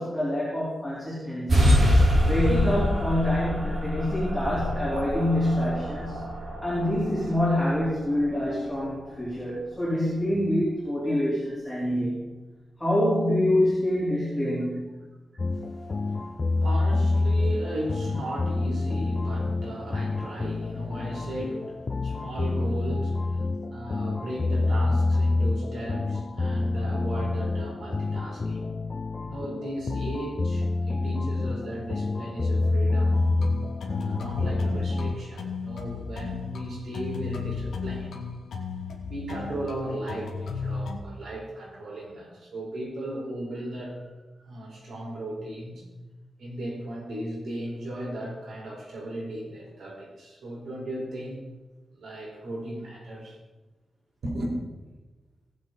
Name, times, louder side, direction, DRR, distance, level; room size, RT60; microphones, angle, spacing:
voice 1, 0.0-2.0 2.2-6.3 6.6-12.3 12.8-14.9, left 1 dB, 5° left, -9 dB, 4.0 m, -26 dB
sound 1, 1.5-8.6, equal, 45° right, 4.2 m, -25 dB
sound 2, 15.4-35.2, left 2 dB, 30° left, 0.4 m, -27 dB
voice 2, 15.5-28.8 29.2-33.2 33.9-38.3 39.0-44.0 44.4-45.8 46.4-51.4 51.9-53.4 54.2-54.5, right 1 dB, 75° right, -3 dB, 4.8 m, -36 dB
sound 3, 33.1-41.0, left 5 dB, 90° left, 1.7 m, -35 dB
19.0 x 7.5 x 4.2 m, 1.2 s
wide cardioid pair, 155°, 0 cm